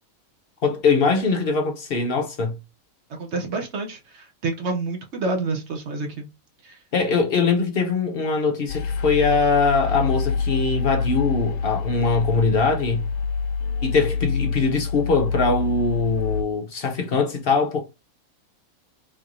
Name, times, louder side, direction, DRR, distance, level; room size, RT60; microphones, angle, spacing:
voice 1, 0.6-2.6 6.9-13.1 13.8-17.8, left 4 dB, 55° left, 0.7 m, -22 dB
voice 2, 3.1-6.3 6.6-6.8, right 3 dB, 60° right, 0.9 m, -28 dB
sound 1, 8.7-16.4, left 5 dB, 80° left, 1.0 m, -26 dB
3.8 x 3.2 x 2.5 m
omnidirectional pair, 1.5 m